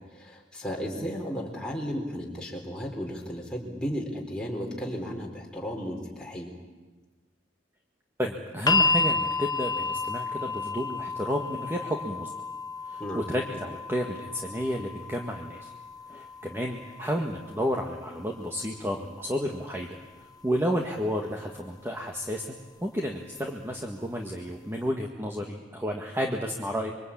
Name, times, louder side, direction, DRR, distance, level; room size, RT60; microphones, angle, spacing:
voice 1, 0.1-6.5 13.0-13.2, equal, 5° left, -2 dB, 4.0 m, -34 dB
voice 2, 8.2-12.3 12.9-15.7 16.1-20.0 20.4-22.5 22.8-26.9, equal, 10° right, 1 dB, 1.7 m, -31 dB
sound 1, 8.7-20.7 21.8-21.9, left 3 dB, 20° left, 0.9 m, -32 dB
25.5 x 23.5 x 8.7 m, 1.2 s
head